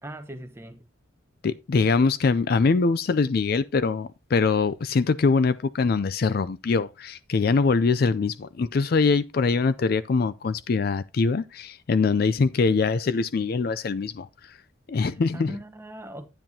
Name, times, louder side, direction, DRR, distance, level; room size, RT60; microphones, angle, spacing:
voice 1, 0.0-0.8 14.9-16.3, right 1 dB, 10° right, 0.9 m, -40 dB
voice 2, 1.4-14.3 14.9-15.6, left 4 dB, 50° left, 0.4 m, -23 dB
10.0 x 9.0 x 2.8 m
head